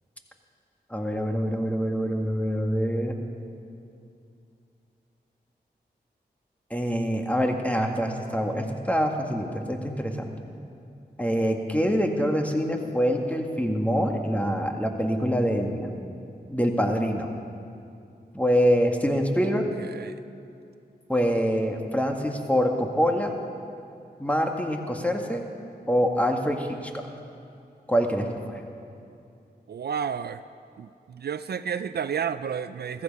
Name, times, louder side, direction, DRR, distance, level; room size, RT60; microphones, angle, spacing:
voice 1, 0.9-3.2 6.7-10.3 11.2-15.9 16.5-17.3 18.3-19.6 21.1-23.3 24.2-25.4 25.9-26.8 27.9-28.6, equal, 10° left, 3 dB, 1.8 m, -25 dB
voice 2, 19.8-20.2 29.7-30.4 30.8-33.0, right 7 dB, 70° right, 13 dB, 0.4 m, -31 dB
14.5 x 14.0 x 5.4 m, 2.6 s
cardioid pair, 40°, 17 cm